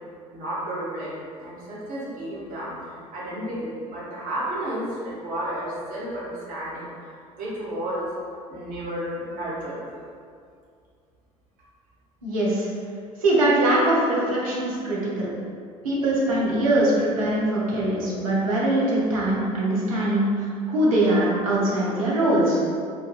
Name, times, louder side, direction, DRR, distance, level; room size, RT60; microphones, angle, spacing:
voice 1, 0.3-1.1 1.4-2.8 3.1-8.1 8.5-9.8, right 1 dB, 50° right, -7 dB, 1.0 m, -32 dB
voice 2, 12.2-12.7 13.2-15.3 15.8-22.6, right 1 dB, 75° right, -6 dB, 0.7 m, -22 dB
3.2 x 2.2 x 2.2 m, 2.3 s
figure-of-eight pair, 60°, 18 cm